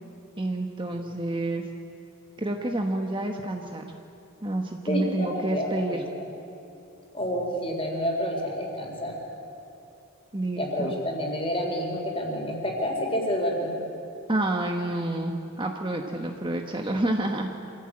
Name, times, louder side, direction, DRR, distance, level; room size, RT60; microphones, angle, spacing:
voice 1, 0.4-1.6 2.4-3.8 4.4-6.0 10.3-10.9 14.3-17.5, right 1 dB, 20° right, 3 dB, 1.2 m, -29 dB
voice 2, 4.9-6.0 7.1-9.2 10.6-13.7, equal, 25° left, 1 dB, 4.0 m, -29 dB
26.0 x 16.0 x 8.8 m, 2.9 s
head